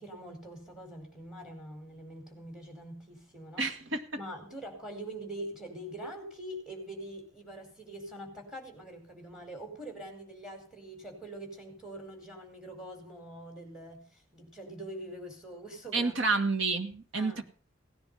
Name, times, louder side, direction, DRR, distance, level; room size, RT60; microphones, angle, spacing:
voice 1, 0.0-3.7 4.2-16.2 17.1-17.4, right 1 dB, 5° right, 5 dB, 4.7 m, -44 dB
voice 2, 3.6-4.0 15.9-17.4, right 3 dB, 65° right, 7 dB, 2.1 m, -29 dB
17.5 x 10.5 x 5.6 m, 0.41 s
head